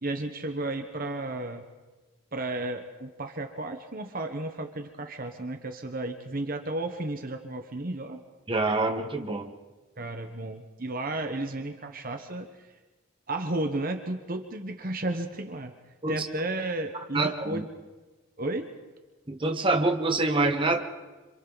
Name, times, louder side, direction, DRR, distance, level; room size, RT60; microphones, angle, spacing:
voice 1, 0.0-1.6 2.3-8.2 10.0-12.7 13.3-15.7 16.1-17.7 18.4-18.7, right 2 dB, 45° right, 5 dB, 1.2 m, -33 dB
voice 2, 8.5-9.5 16.0-16.1 17.1-17.6 19.3-20.8, right 2 dB, 25° right, 3 dB, 1.4 m, -26 dB
27.0 x 26.5 x 4.1 m, 1.2 s
head